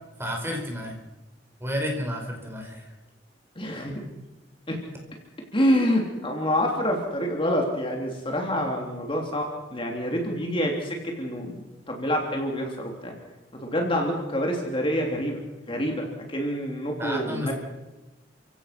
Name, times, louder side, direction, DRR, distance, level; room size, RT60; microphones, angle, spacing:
voice 1, 0.2-1.0 1.6-2.9 17.0-17.5, equal, 15° right, 2 dB, 5.0 m, -31 dB
voice 2, 3.5-3.9 4.7-4.8 5.5-9.4 9.7-11.6 11.9-13.2 13.6-15.4 15.7-17.5, equal, 30° left, 1 dB, 3.2 m, -27 dB
30.0 x 16.5 x 6.0 m, 1.0 s
head